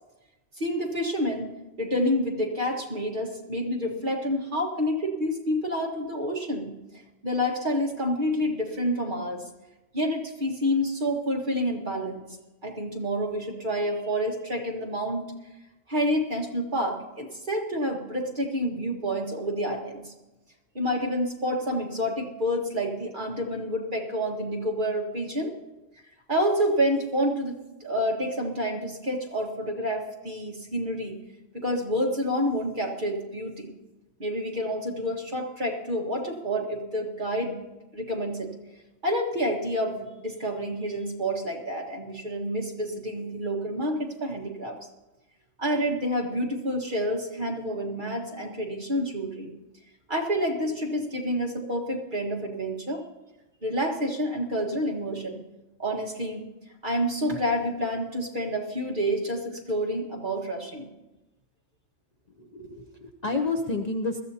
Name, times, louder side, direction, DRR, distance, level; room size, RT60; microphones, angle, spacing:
voice 1, 0.6-1.5 1.8-6.7 7.2-9.4 9.9-12.2 12.6-15.3 15.9-20.1 20.8-25.5 26.3-31.2 31.5-33.7 34.2-37.6 37.9-38.5 39.0-44.8 45.6-49.5 50.1-53.0 53.6-55.4 55.8-56.4 56.8-60.9, equal, 40° right, 0 dB, 1.8 m, -28 dB
voice 2, 62.4-64.2, left 3 dB, 40° left, 3 dB, 0.7 m, -30 dB
21.0 x 14.0 x 2.8 m, 1.0 s
omnidirectional pair, 1.3 m